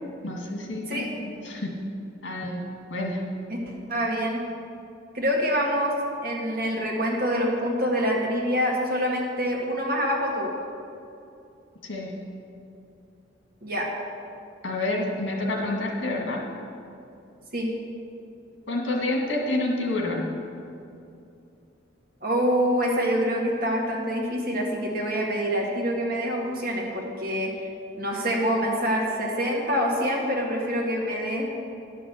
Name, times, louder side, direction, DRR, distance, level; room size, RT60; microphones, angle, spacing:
voice 1, 0.2-1.7 2.2-2.6 2.9-3.2 11.8-12.1 14.6-16.4 18.7-20.3, left 2 dB, 85° left, 0 dB, 2.0 m, -28 dB
voice 2, 3.9-4.4 5.1-5.9 6.2-10.5 13.6-13.9 17.5-17.7 22.2-27.7 28.0-31.4, equal, 50° right, -2 dB, 1.9 m, -26 dB
11.0 x 6.0 x 7.7 m, 2.6 s
head